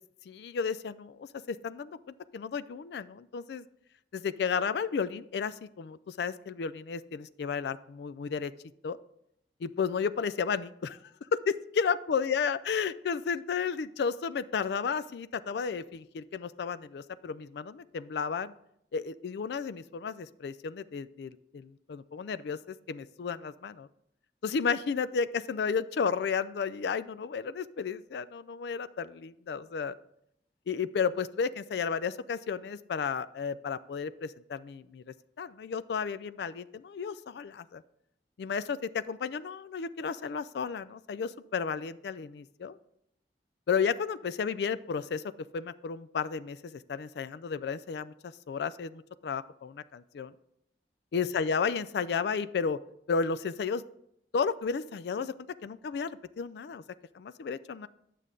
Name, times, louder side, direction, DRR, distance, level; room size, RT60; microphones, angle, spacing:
voice 1, 0.3-2.0 2.3-3.6 4.1-8.5 8.8-9.0 9.6-11.0 11.3-18.5 18.9-23.9 24.4-30.0 30.7-35.0 35.4-37.8 38.4-42.8 43.7-45.2 45.5-50.3 51.1-52.8 53.1-53.8 54.3-55.3 55.6-56.8 57.1-57.9, left 6 dB, 65° left, 15 dB, 0.3 m, -33 dB
9.5 x 6.7 x 3.7 m, 0.75 s
head